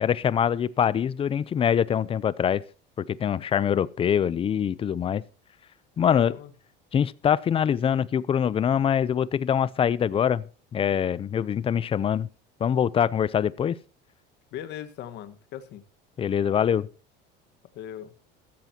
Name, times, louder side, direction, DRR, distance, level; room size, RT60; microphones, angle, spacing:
voice 1, 0.0-2.6 3.0-5.2 6.0-6.3 6.9-10.4 10.7-12.3 12.6-13.8 16.2-16.9, left 8 dB, 25° left, 0.6 m, -24 dB
voice 2, 6.1-6.5 14.5-15.8 17.7-18.1, left 11 dB, 55° left, 1.5 m, -38 dB
15.0 x 13.5 x 2.9 m
cardioid pair, 140°, 21 cm